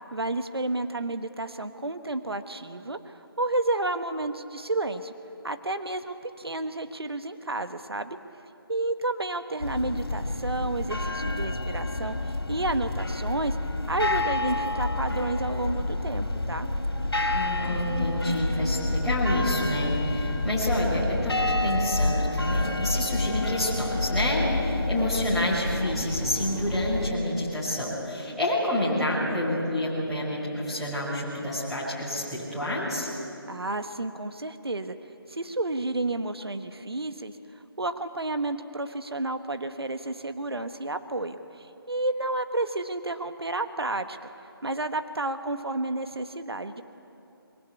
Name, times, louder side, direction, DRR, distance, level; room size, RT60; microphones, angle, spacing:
voice 1, 0.1-5.1 5.4-8.2 8.7-13.6 13.9-16.7 33.5-34.9 35.3-37.3 37.8-44.2 44.6-46.8, right 2 dB, 80° right, 9 dB, 1.4 m, -31 dB
sound 1, 9.6-27.1, left 2 dB, 75° left, 3.1 m, -28 dB
voice 2, 17.3-33.1, left 1 dB, ahead, -12 dB, 5.9 m, -28 dB
24.5 x 23.0 x 8.4 m, 2.8 s
figure-of-eight pair, 155°, 13 cm